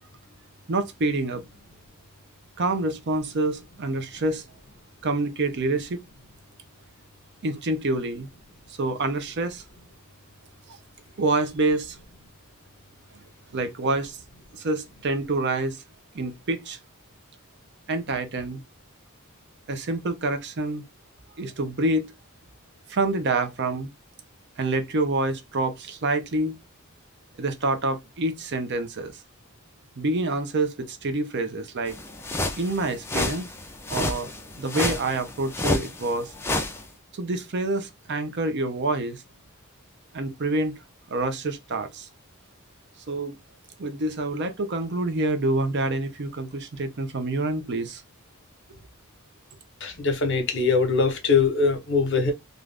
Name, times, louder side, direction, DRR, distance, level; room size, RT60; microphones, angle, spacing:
voice 1, 0.7-1.4 2.6-4.4 5.0-6.0 7.4-8.3 8.7-9.6 10.7-10.8 11.2-12.0 13.5-14.2 14.5-15.8 16.1-16.8 17.9-18.6 19.7-20.8 21.4-22.1 22.9-23.9 24.6-26.6 27.4-29.1 30.0-32.0 32.6-33.5 33.9-34.3 34.6-36.3 37.1-39.2 40.1-40.7 41.1-42.1 43.1-43.4 43.8-48.0, right 2 dB, 50° right, 0.6 m, -27 dB
sound 1, 31.9-36.8, left 2 dB, 10° left, 0.4 m, -30 dB
voice 2, 49.8-52.3, left 4 dB, 55° left, 0.9 m, -22 dB
2.5 x 2.5 x 3.3 m
head